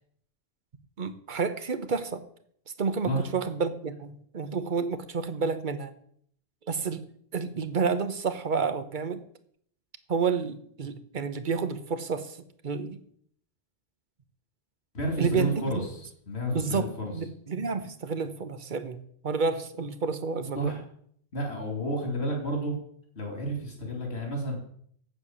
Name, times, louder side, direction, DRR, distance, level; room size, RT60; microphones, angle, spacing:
voice 1, 1.0-2.2 2.8-5.9 6.7-7.0 7.3-9.2 10.1-12.4 12.6-13.0 15.2-15.5 16.5-20.7, right 5 dB, 50° right, 11 dB, 1.0 m, -30 dB
voice 2, 14.9-17.1 20.5-20.8 21.3-22.8 23.1-24.6, right 1 dB, 80° left, 0 dB, 3.3 m, -31 dB
8.3 x 7.7 x 7.4 m, 0.64 s
omnidirectional pair, 1.1 m